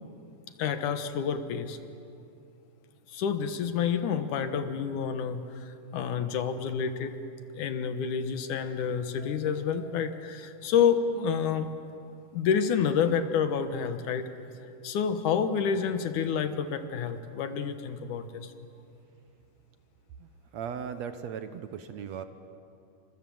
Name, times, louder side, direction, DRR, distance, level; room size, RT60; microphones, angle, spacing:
voice 1, 0.6-1.8 3.1-7.2 7.5-11.7 12.3-14.3 14.8-18.5, left 7 dB, 75° left, 9 dB, 2.7 m, -29 dB
voice 2, 20.2-22.2, right 7 dB, 65° right, 9 dB, 1.9 m, -38 dB
28.0 x 25.5 x 7.8 m, 2.6 s
omnidirectional pair, 3.7 m